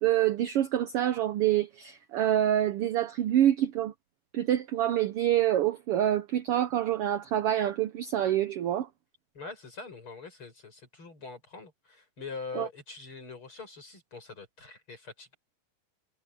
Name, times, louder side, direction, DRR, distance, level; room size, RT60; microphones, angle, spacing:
voice 1, 0.0-3.9 4.3-8.9 12.5-12.7, right 12 dB, 80° right, 1.3 m, -26 dB
voice 2, 9.3-15.4, left 4 dB, 40° left, 7.8 m, -43 dB
omnidirectional pair, 3.5 m